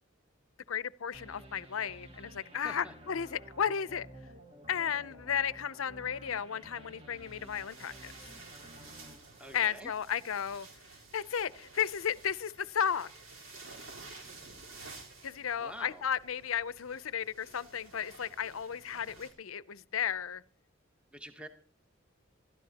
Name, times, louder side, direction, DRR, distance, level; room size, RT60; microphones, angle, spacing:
voice 1, 0.7-4.1 4.7-8.1 9.5-10.7 11.1-13.1 15.2-20.4, left 8 dB, 80° left, 0.6 m, -34 dB
sound 1, 1.1-10.2, right 1 dB, 30° right, 1.6 m, -53 dB
voice 2, 2.6-2.9 9.4-9.9 15.6-16.0 21.1-21.5, right 1 dB, 5° right, 1.1 m, -46 dB
sound 2, 7.1-19.3, right 3 dB, 90° right, 4.1 m, -52 dB
26.5 x 13.0 x 2.9 m
head